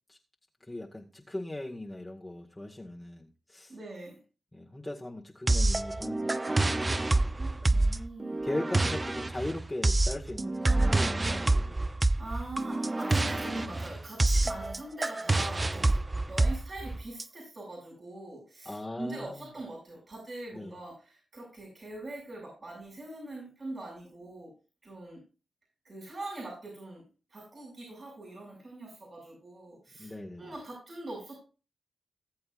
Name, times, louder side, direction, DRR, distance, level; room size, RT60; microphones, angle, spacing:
voice 1, 0.6-3.8 4.5-7.3 7.6-7.8 8.4-11.8 18.7-19.5 20.5-20.8 30.0-30.5, left 1 dB, 20° left, -1 dB, 1.9 m, -39 dB
voice 2, 3.7-4.2 7.4-8.4 12.1-15.9 16.3-24.5 24.8-25.2 25.8-27.0 27.3-31.4, right 2 dB, 50° right, -3 dB, 6.3 m, -42 dB
sound 1, 5.5-17.2, right 2 dB, 35° right, 0.6 m, -27 dB
18.5 x 7.8 x 2.6 m, 0.33 s
supercardioid pair, 40°, 0 cm